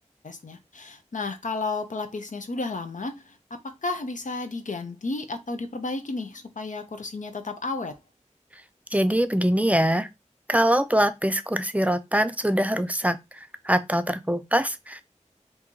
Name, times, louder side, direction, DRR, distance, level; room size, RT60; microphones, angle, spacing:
voice 1, 0.2-3.4 3.8-8.0, left 3 dB, 85° left, 0.6 m, -32 dB
voice 2, 8.9-10.1 10.5-13.2 13.6-15.0, equal, 10° right, 0.4 m, -23 dB
2.9 x 2.7 x 3.7 m
wide cardioid pair, 50°, 13 cm